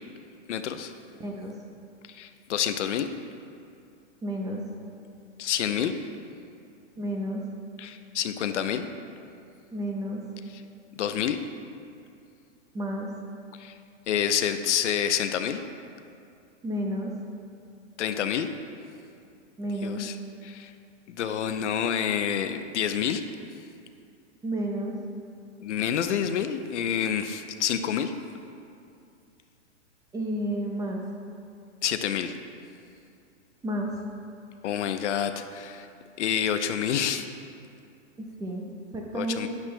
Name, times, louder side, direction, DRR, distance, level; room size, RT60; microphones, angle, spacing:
voice 1, 0.5-0.9 2.1-3.1 5.4-5.9 7.8-8.9 11.0-11.4 13.6-13.7 14.1-15.6 18.0-18.5 19.8-20.2 20.4-20.7 21.1-23.2 25.6-28.1 31.8-32.4 34.6-35.9 36.2-37.3 39.1-39.5, left 9 dB, 75° left, 8 dB, 0.7 m, -28 dB
voice 2, 1.1-1.5 4.2-4.6 7.0-7.4 9.7-10.2 12.7-13.1 16.6-17.1 19.6-20.0 24.4-24.9 30.1-31.0 33.6-33.9 38.2-39.5, right 1 dB, 10° right, 0 dB, 0.8 m, -31 dB
12.0 x 9.8 x 2.2 m, 2.5 s
hypercardioid pair, 135°, 36 cm